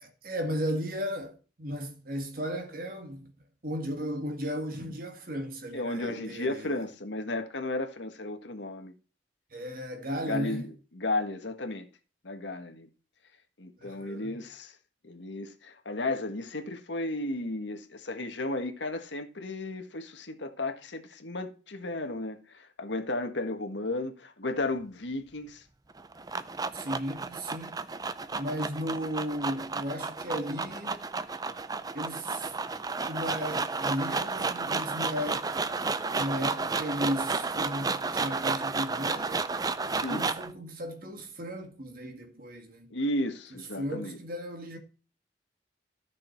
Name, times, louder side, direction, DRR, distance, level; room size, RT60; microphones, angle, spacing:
voice 1, 0.0-3.3 3.6-6.8 9.5-10.6 13.8-14.4 26.7-27.8 28.4-31.0 31.9-32.5 33.1-35.5 36.1-39.5 40.1-43.0 43.8-44.8, equal, 50° right, 1.9 m, -35 dB
voice 2, 5.7-8.9 10.2-11.9 12.2-12.9 13.6-14.7 15.0-25.6 39.9-40.3 42.9-44.2, left 2 dB, 75° left, 1.6 m, -34 dB
sound 1, 25.9-40.5, right 4 dB, 20° right, 0.5 m, -32 dB
13.5 x 6.4 x 4.5 m
head